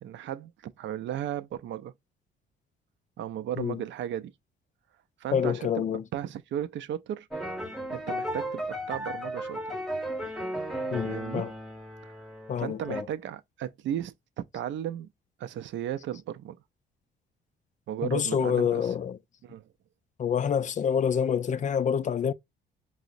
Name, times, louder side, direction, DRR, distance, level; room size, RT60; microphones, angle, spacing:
voice 1, 0.0-1.9 3.2-4.3 5.2-5.8 6.1-7.3 7.9-9.8 11.0-11.4 12.6-14.1 14.5-15.1 15.4-16.6 17.9-18.9 19.4-19.6, right 10 dB, 70° right, 0.5 m, -35 dB
voice 2, 5.3-6.0 10.9-11.5 12.5-13.1 18.0-19.2 20.2-22.3, left 8 dB, 40° left, 0.4 m, -27 dB
sound 1, 7.3-13.0, equal, ahead, 1.0 m, -35 dB
4.7 x 2.0 x 2.5 m
cardioid pair, 90°, 20 cm